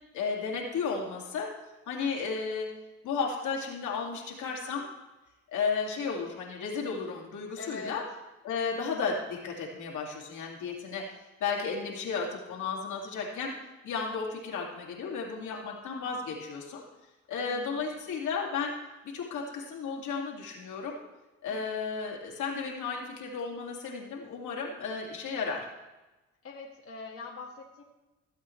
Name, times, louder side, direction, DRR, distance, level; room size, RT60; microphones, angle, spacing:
voice 1, 0.1-1.5 1.9-2.7 3.0-4.9 5.5-8.0 8.4-11.1 11.4-13.5 13.8-16.8 17.3-18.7 19.0-21.0 21.4-25.6, left 5 dB, 80° left, -1 dB, 2.3 m, -33 dB
voice 2, 7.6-8.0 15.5-16.1 17.3-18.1 21.5-21.6 26.4-27.8, left 3 dB, 45° left, -2 dB, 1.6 m, -44 dB
16.0 x 8.1 x 3.2 m, 1.1 s
cardioid pair, 90°, 30 cm